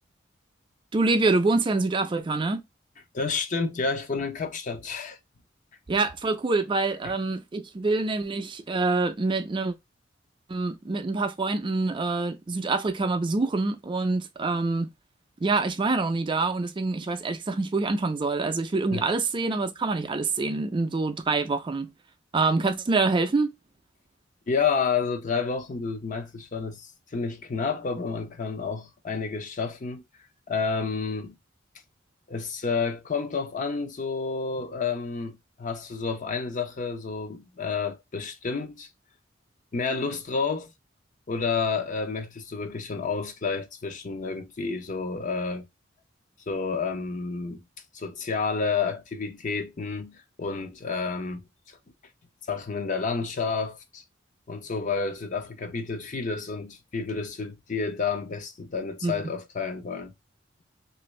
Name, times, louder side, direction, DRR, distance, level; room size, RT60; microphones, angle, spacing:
voice 1, 0.9-2.6 5.9-9.7 10.5-14.9 15.4-21.9 22.3-23.5 59.0-59.1, right 3 dB, 25° right, 0.4 m, -26 dB
voice 2, 3.1-5.2 7.0-7.1 18.9-19.0 24.5-30.1 30.5-31.3 32.3-38.9 39.7-40.7 41.3-45.7 46.5-47.6 47.9-51.4 52.5-54.0 54.5-60.1, left 5 dB, 40° left, 0.5 m, -30 dB
3.0 x 2.6 x 3.0 m
head